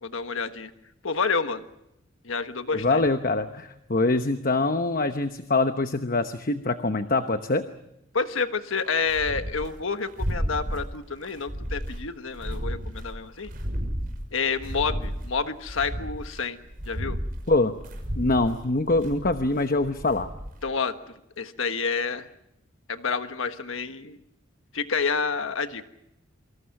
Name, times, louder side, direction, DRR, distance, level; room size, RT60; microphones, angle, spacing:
voice 1, 0.0-0.7 1.0-1.6 2.2-3.0 8.1-13.5 14.3-16.6 16.9-17.2 20.6-21.0 21.4-22.3 22.9-24.2 24.7-25.8, left 5 dB, 80° left, 8 dB, 1.4 m, -29 dB
voice 2, 2.7-7.6 17.5-17.7 18.1-20.3, left 2 dB, 45° left, 8 dB, 1.0 m, -24 dB
sound 1, 8.8-9.7 10.0-10.9 11.2-13.1 13.4-15.3 15.6-20.6, equal, 45° right, 6.1 m, -33 dB
28.0 x 25.5 x 6.0 m, 0.84 s
head